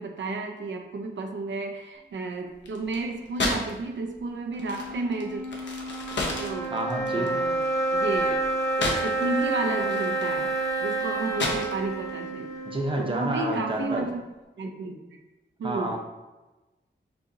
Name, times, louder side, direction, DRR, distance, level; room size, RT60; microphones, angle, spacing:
voice 1, 0.0-5.4 6.4-6.8 7.1-7.7 7.9-8.4 8.8-10.5 10.8-12.5 12.9-14.2 14.6-15.2 15.6-16.0, right 3 dB, 90° right, 3 dB, 0.5 m, -32 dB
sound 1, 2.6-3.8 4.0-9.4 9.8-12.1, left 2 dB, 75° left, 0.8 m, -32 dB
sound 2, 4.5-14.0, right 2 dB, 15° left, 0.8 m, -29 dB
voice 2, 6.7-7.3 12.7-14.1 15.6-16.0, right 1 dB, 30° right, 1 dB, 0.6 m, -29 dB
6.5 x 2.7 x 2.6 m, 1.1 s
wide cardioid pair, 110°, 19 cm